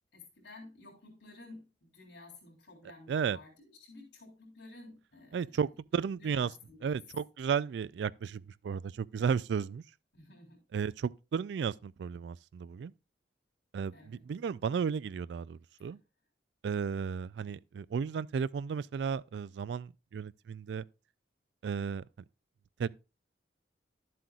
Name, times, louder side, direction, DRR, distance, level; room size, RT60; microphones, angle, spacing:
voice 1, 0.1-5.6 6.2-7.0 10.1-10.6 13.9-14.2 15.8-15.9, left 2 dB, 80° left, 3.5 m, -53 dB
voice 2, 5.3-6.5 6.8-9.8 10.7-12.9 13.7-16.0 16.6-20.9 21.6-22.0 22.8-22.9, right 6 dB, 70° right, 0.3 m, -34 dB
11.5 x 7.6 x 2.4 m
head